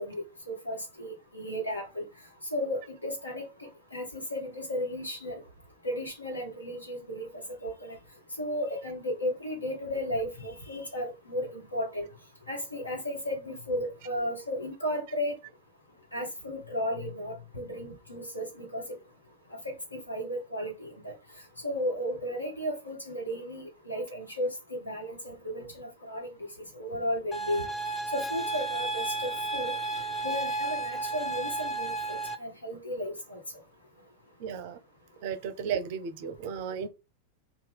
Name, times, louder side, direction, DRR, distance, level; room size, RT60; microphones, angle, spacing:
voice 1, 0.0-2.0 2.5-5.4 5.8-7.3 7.6-8.0 8.4-12.1 12.5-15.4 16.1-19.0 19.6-21.1 21.6-26.3 26.7-27.6 28.1-29.7 30.2-33.4, equal, 80° left, 1.1 m, -34 dB
sound 1, 27.3-32.4, right 3 dB, 10° left, 0.5 m, -33 dB
voice 2, 34.4-34.8 35.2-36.9, right 7 dB, 50° right, 0.4 m, -34 dB
2.7 x 2.2 x 3.5 m
figure-of-eight pair, 90°, 0 cm